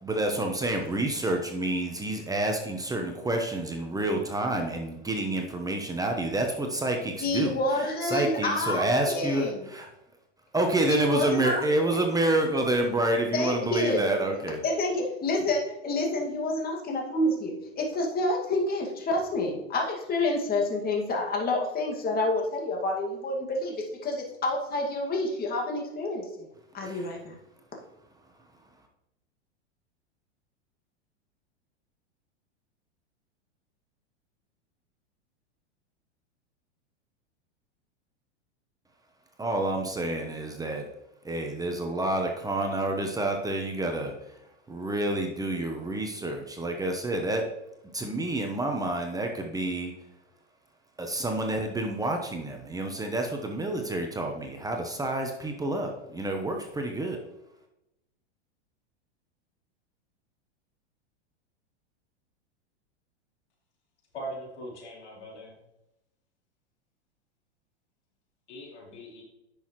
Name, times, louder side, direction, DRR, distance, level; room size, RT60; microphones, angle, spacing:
voice 1, 0.0-7.6 8.0-9.9 10.5-14.6 26.8-27.0 39.4-40.9 41.2-44.1 44.7-47.5 47.9-49.9 51.0-57.2, right 1 dB, 10° right, 3 dB, 1.0 m, -28 dB
voice 2, 7.2-9.6 10.8-11.9 13.3-14.0 14.6-26.5 26.7-27.3, left 2 dB, 25° left, 0 dB, 2.2 m, -28 dB
voice 3, 64.1-65.6 68.5-69.2, right 1 dB, 80° left, -2 dB, 3.5 m, -40 dB
10.0 x 6.4 x 3.2 m, 0.87 s
hypercardioid pair, 115°, 34 cm